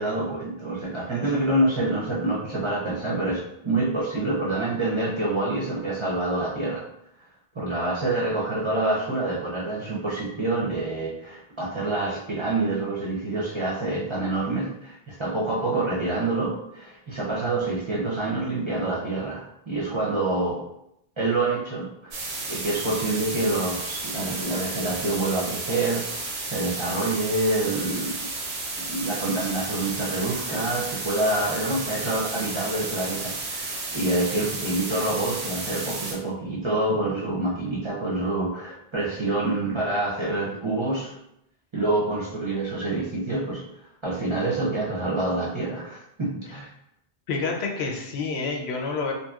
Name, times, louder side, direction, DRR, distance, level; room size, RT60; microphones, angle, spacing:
voice 1, 0.0-6.9 7.5-20.6 21.2-22.1 22.5-26.1 26.5-28.2 28.8-41.2 41.7-43.6 44.0-46.7, right 2 dB, 35° right, -6 dB, 0.5 m, -27 dB
sound 1, 22.1-36.1, right 3 dB, 85° right, 0.9 m, -32 dB
voice 2, 47.3-49.1, left 4 dB, 85° left, 1 dB, 0.9 m, -28 dB
2.8 x 2.6 x 2.3 m, 0.79 s
omnidirectional pair, 1.1 m